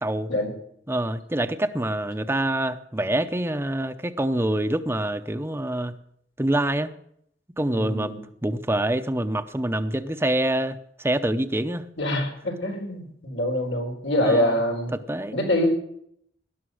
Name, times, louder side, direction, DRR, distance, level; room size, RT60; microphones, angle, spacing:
voice 1, 0.0-0.3 0.9-5.9 6.4-6.9 7.6-8.1 8.4-11.8 14.2-14.6 14.9-15.4, right 1 dB, 15° right, 10 dB, 0.7 m, -26 dB
voice 2, 7.7-8.2 12.0-14.9 15.3-15.7, left 1 dB, 90° left, 2 dB, 4.3 m, -25 dB
18.5 x 11.5 x 6.4 m, 0.72 s
head